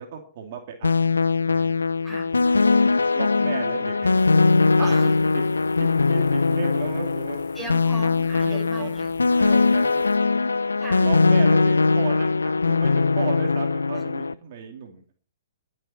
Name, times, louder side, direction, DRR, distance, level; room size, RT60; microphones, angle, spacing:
voice 1, 0.0-1.8 3.1-5.4 5.8-7.4 8.4-8.9 9.4-10.1 11.0-15.1, right 7 dB, 50° right, 2 dB, 2.7 m, -35 dB
sound 1, 0.8-14.3, left 4 dB, 85° left, 0.5 m, -21 dB
sound 2, 4.1-10.2, left 5 dB, 65° left, 3.3 m, -49 dB
voice 2, 4.8-5.1 7.5-9.2 10.7-11.1 13.9-14.0, right 1 dB, ahead, -2 dB, 6.1 m, -37 dB
21.5 x 7.8 x 4.4 m, 0.43 s
hypercardioid pair, 125°, 0 cm